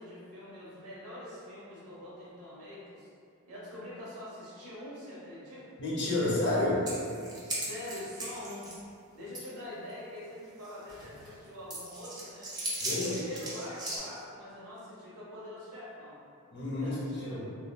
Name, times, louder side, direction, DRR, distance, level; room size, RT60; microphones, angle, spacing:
voice 1, 0.0-3.1 3.5-5.7 7.4-8.7 9.1-12.5 12.9-16.2 16.8-17.5, left 1 dB, 90° right, -8 dB, 0.8 m, -44 dB
voice 2, 5.8-6.9 12.8-13.2 16.5-17.4, left 2 dB, 55° left, -5 dB, 0.7 m, -30 dB
sound 1, 6.9-8.8 9.3-9.4 9.9-10.0 10.6-11.3 11.7-14.0, right 1 dB, 20° right, 0.5 m, -37 dB
3.0 x 2.2 x 2.2 m, 2.4 s
head